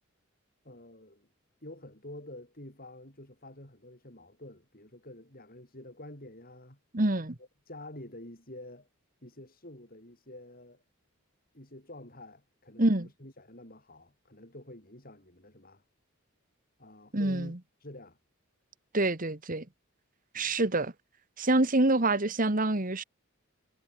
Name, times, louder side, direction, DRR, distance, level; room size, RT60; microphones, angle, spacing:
voice 1, 0.6-1.3 1.6-6.8 7.7-8.9 9.2-10.8 11.5-15.8 16.8-18.2 20.3-20.6, left 1 dB, 45° left, 7.2 m, -48 dB
voice 2, 6.9-7.4 12.8-13.1 17.1-17.6 18.9-19.7 20.3-20.9 21.4-23.0, right 2 dB, 40° right, 1.7 m, -26 dB
head